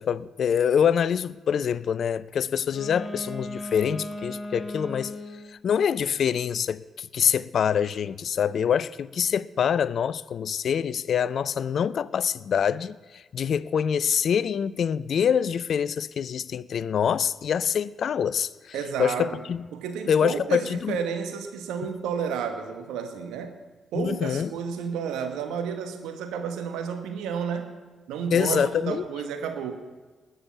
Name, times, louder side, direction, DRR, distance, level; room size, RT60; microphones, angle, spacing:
voice 1, 0.0-5.2 5.5-19.6 20.1-21.0 23.9-24.5 28.3-29.0, left 8 dB, 55° left, 0.3 m, -25 dB
Wind instrument woodwind instrument, 2.6-5.5, left 1 dB, 10° left, 4.2 m, -36 dB
voice 2, 18.7-19.4 19.7-23.6 23.9-27.8 28.1-29.7, right 7 dB, 70° right, 1.3 m, -31 dB
20.0 x 6.9 x 5.8 m
hypercardioid pair, 40°, 0 cm